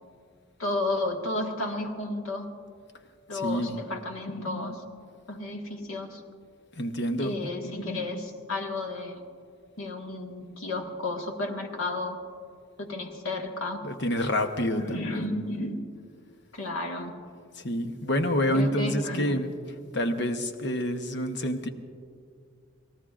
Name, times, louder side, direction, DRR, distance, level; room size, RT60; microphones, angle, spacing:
voice 1, 0.6-2.5 3.3-4.8 5.3-6.2 7.2-9.2 9.8-12.2 12.8-13.8 14.7-15.9 16.5-17.1 18.5-19.4, left 2 dB, 90° left, 2 dB, 1.7 m, -32 dB
voice 2, 3.3-3.8 6.8-7.3 13.8-15.2 17.6-19.5 19.9-21.7, equal, 55° left, 6 dB, 0.9 m, -27 dB
29.0 x 18.0 x 2.5 m, 2.2 s
head